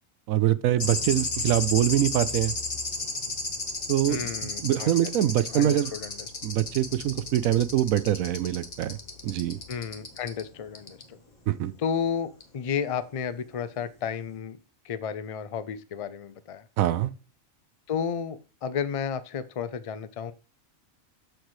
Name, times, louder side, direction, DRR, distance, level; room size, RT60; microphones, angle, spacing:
voice 1, 0.3-2.5 3.9-4.2 4.6-5.9 6.4-9.0 9.2-9.6 11.5-11.7 16.8-17.1, right 12 dB, 80° right, 1.0 m, -24 dB
sound 1, 0.8-10.4 10.7-11.0 12.4-12.5, left 3 dB, 30° left, 1.2 m, -34 dB
voice 2, 4.1-6.3 9.7-11.2 11.8-14.6 14.8-16.7 17.9-20.3, left 7 dB, 60° left, 0.3 m, -32 dB
13.0 x 4.6 x 3.1 m
omnidirectional pair, 1.5 m